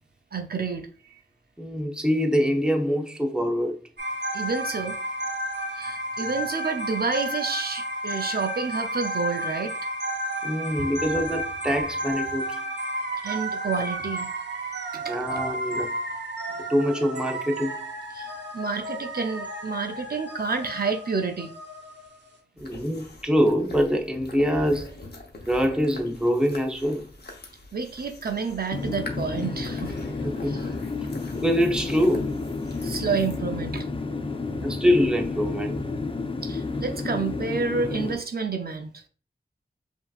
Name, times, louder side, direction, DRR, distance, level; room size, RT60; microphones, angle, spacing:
voice 1, 0.3-1.2 4.3-5.0 5.7-9.7 13.2-14.3 14.9-15.4 18.1-21.5 27.7-29.9 30.5-30.6 32.8-33.9 36.4-39.0, right 4 dB, 60° right, 0.5 m, -29 dB
voice 2, 1.6-3.8 10.4-12.6 15.1-15.9 16.7-17.8 22.6-24.9 25.5-27.1 30.2-30.6 31.4-32.3 34.6-35.8, equal, 5° right, 0.7 m, -24 dB
sound 1, 4.0-22.3, right 1 dB, 80° right, 0.9 m, -32 dB
sound 2, 22.6-33.4, left 2 dB, 65° left, 0.8 m, -43 dB
sound 3, 28.7-38.2, left 3 dB, 30° left, 0.4 m, -31 dB
5.5 x 2.7 x 2.3 m
wide cardioid pair, 80°, 18 cm